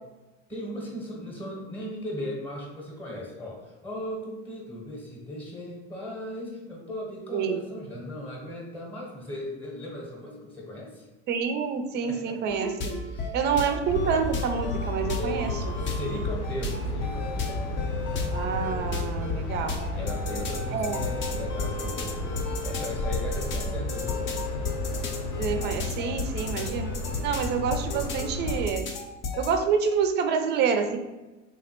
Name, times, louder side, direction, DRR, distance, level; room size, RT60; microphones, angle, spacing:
voice 1, 0.5-11.1 12.0-12.6 13.0-13.6 15.1-17.7 19.9-24.3, left 1 dB, 5° left, -2 dB, 0.9 m, -37 dB
voice 2, 11.3-13.0 13.3-15.5 18.3-19.9 20.7-21.0 25.4-26.9 27.2-28.8 29.4-31.0, right 6 dB, 30° right, 7 dB, 0.4 m, -27 dB
sound 1, 12.5-29.5, left 3 dB, 35° left, 0.6 m, -33 dB
sound 2, 13.8-28.7, left 1 dB, 75° left, 0.9 m, -33 dB
3.6 x 2.0 x 2.9 m, 1.1 s
hypercardioid pair, 90°, 35 cm